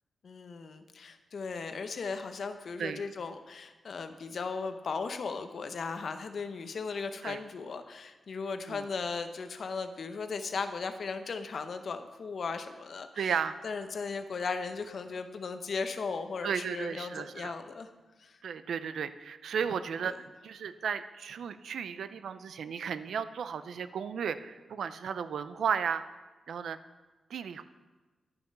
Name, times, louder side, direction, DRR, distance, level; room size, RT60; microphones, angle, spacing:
voice 1, 0.2-13.3 13.6-17.9 18.2-18.4 20.0-20.1, left 4 dB, 60° left, 8 dB, 0.7 m, -37 dB
voice 2, 13.2-13.6 16.4-17.5 18.4-26.2 26.5-26.8 27.3-27.6, right 7 dB, 85° right, 13 dB, 0.4 m, -34 dB
11.0 x 6.8 x 5.3 m, 1.2 s
wide cardioid pair, 120°, 0 cm